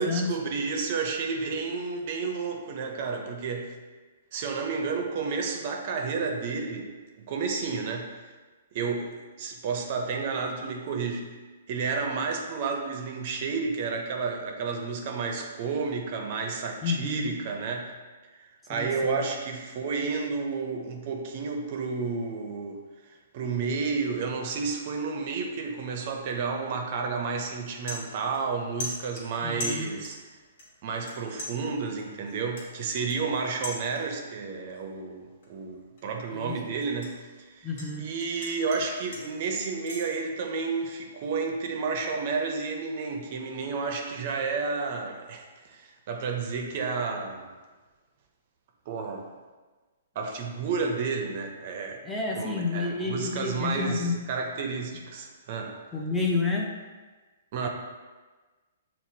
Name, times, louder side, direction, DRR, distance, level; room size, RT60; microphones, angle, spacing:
voice 1, 0.0-3.7 4.3-6.9 7.2-8.2 8.7-11.3 11.7-17.9 18.7-22.8 23.3-30.2 30.8-37.2 37.5-37.7 38.0-47.6 48.9-49.3 50.2-52.0 52.3-55.8 57.5-57.7, right 4 dB, 50° right, 2 dB, 0.5 m, -31 dB
voice 2, 16.8-17.3 18.7-19.2 29.4-29.9 36.3-36.6 37.6-38.0 52.0-54.2 55.9-56.8 57.6-57.7, left 3 dB, 10° left, -2 dB, 0.5 m, -30 dB
sound 1, 26.9-27.2 27.5-28.5 28.8-30.3 30.6-31.1 31.4-34.3 34.7-35.0 35.4-37.9 38.2-40.1, left 1 dB, 60° left, 1.2 m, -40 dB
5.7 x 2.0 x 2.7 m, 1.3 s
hypercardioid pair, 135°, 0 cm